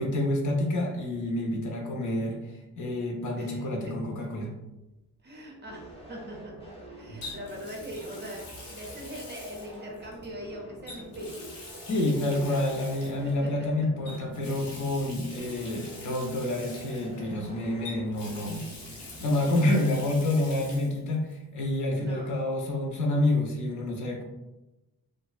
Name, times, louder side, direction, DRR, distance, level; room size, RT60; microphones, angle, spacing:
voice 1, 0.0-4.5 11.9-18.6 18.9-24.2, left 1 dB, 60° left, 0 dB, 0.6 m, -28 dB
voice 2, 3.4-3.9 5.2-13.9 15.3-15.4 19.8-19.9 22.0-22.4, equal, 30° right, -1 dB, 0.5 m, -42 dB
Water tap faucet, 4.2-4.5 7.2-10.3 10.8-13.3 14.0-17.5 17.8-21.0 21.3-21.4 23.0-23.1, left 2 dB, 90° left, 0.9 m, -45 dB
sound 1, 5.7-19.5, equal, 15° left, 0.5 m, -47 dB
2.5 x 2.1 x 2.3 m, 0.99 s
cardioid pair, 130°, 34 cm